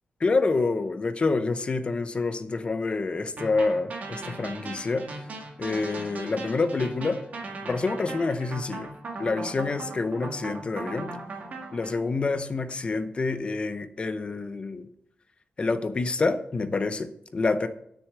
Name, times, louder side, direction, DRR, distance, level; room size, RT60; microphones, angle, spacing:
voice 1, 0.2-5.1 5.6-7.2 7.7-8.9 9.2-11.2 11.7-14.9 15.6-17.7, left 3 dB, 35° left, 11 dB, 0.6 m, -27 dB
sound 1, 3.4-11.9, right 3 dB, 55° right, 1.8 m, -38 dB
6.6 x 6.2 x 7.5 m, 0.73 s
wide cardioid pair, 145°, 3 cm